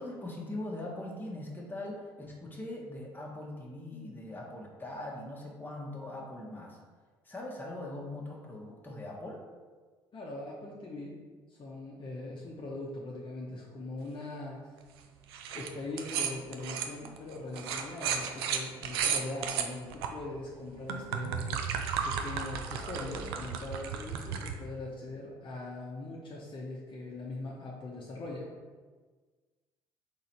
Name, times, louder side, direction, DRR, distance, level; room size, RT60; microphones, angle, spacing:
voice 1, 0.0-6.8 7.2-9.4, left 1 dB, 15° left, -3 dB, 1.2 m, -41 dB
voice 2, 10.1-11.2 11.5-14.6 15.5-21.7 22.0-28.5, left 2 dB, 40° left, -3 dB, 0.9 m, -41 dB
sound 1, 15.3-15.7 16.0-20.1 20.6-24.5, right 7 dB, 80° right, 0.4 m, -34 dB
3.9 x 3.0 x 4.4 m, 1.4 s
hypercardioid pair, 55°, 13 cm